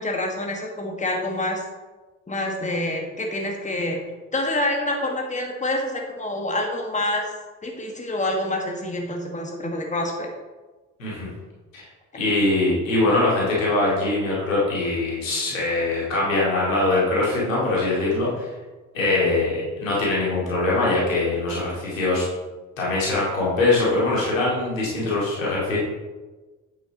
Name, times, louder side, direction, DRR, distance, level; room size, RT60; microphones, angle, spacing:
voice 1, 0.0-1.6 2.3-4.0 4.3-7.3 7.6-10.3, left 1 dB, 20° left, 1 dB, 1.7 m, -27 dB
voice 2, 12.1-18.5 18.9-22.3 22.8-25.8, left 2 dB, 80° left, -6 dB, 2.4 m, -22 dB
8.8 x 8.7 x 3.0 m, 1.2 s
figure-of-eight pair, 45°, 39 cm